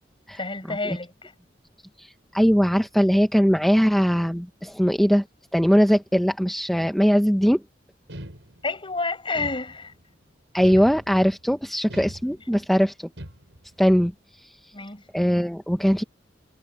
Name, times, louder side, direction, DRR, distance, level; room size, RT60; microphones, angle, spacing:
voice 1, 0.4-1.3 8.6-9.9 12.5-12.6 14.7-15.0, left 3 dB, 30° left, 6.0 m, -29 dB
voice 2, 2.0-5.2 5.5-7.6 10.5-13.1 13.8-14.1 14.4-14.6 15.1-16.0, equal, ahead, 0.8 m, -20 dB
sound 1, 8.1-8.9 9.3-10.1 10.6-11.4 11.9-12.7 13.2-13.8, equal, 85° right, 6.0 m, -41 dB
head